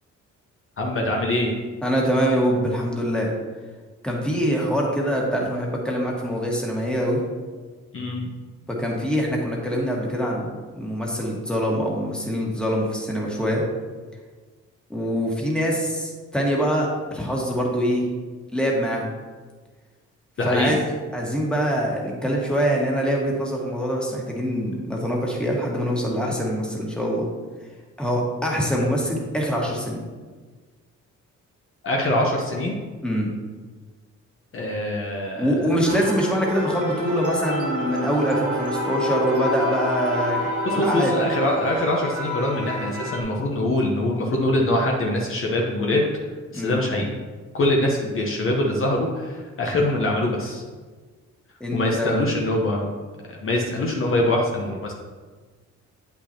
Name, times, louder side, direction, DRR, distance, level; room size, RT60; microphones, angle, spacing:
voice 1, 0.8-1.5 7.9-8.2 20.4-20.7 31.8-32.8 34.5-35.7 40.6-46.0 46.5-47.1 47.5-50.6 51.7-52.9 53.3-54.9, left 1 dB, 45° left, -1 dB, 1.0 m, -23 dB
voice 2, 1.8-3.3 4.0-7.2 8.7-13.6 14.9-18.0 18.5-19.1 20.4-20.8 21.1-27.3 28.0-30.0 33.0-33.3 35.4-41.1 46.5-46.8 51.6-52.1, equal, 5° left, -2 dB, 1.6 m, -24 dB
sound 1, 35.9-43.2, left 1 dB, 50° right, 1.4 m, -28 dB
8.3 x 5.8 x 2.9 m, 1.4 s
cardioid pair, 90°, 30 cm